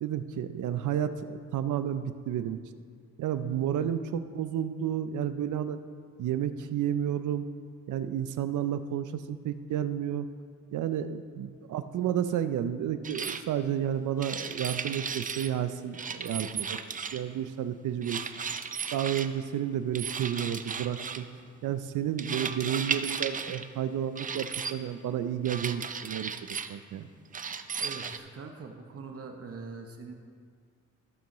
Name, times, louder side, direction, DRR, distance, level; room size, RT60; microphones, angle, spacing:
voice 1, 0.0-2.6 3.2-5.8 6.2-7.5 7.9-10.3 10.7-16.8 17.1-18.3 18.9-21.3 21.6-27.1, right 10 dB, 80° right, 11 dB, 0.6 m, -31 dB
sound 1, 13.0-13.4 14.2-15.5 15.9-17.3 18.0-19.3 19.9-21.3 22.2-23.7 24.2-24.7 25.4-26.7 27.3-28.2, right 6 dB, 25° right, 0.4 m, -35 dB
voice 2, 27.7-30.1, right 4 dB, 50° right, 4 dB, 1.0 m, -43 dB
14.5 x 7.0 x 3.1 m, 2.1 s
cardioid pair, 100°, 30 cm